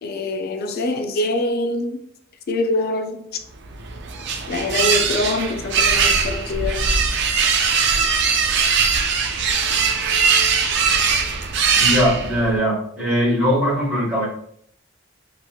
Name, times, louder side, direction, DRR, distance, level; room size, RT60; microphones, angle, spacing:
voice 1, 0.0-2.0 2.5-3.4 4.5-6.9, left 2 dB, 50° left, 0.4 m, -24 dB
sound 1, 3.7-12.6, right 5 dB, 60° right, 0.4 m, -20 dB
voice 2, 11.7-14.3, equal, 10° right, 1.3 m, -20 dB
2.9 x 2.9 x 2.3 m
head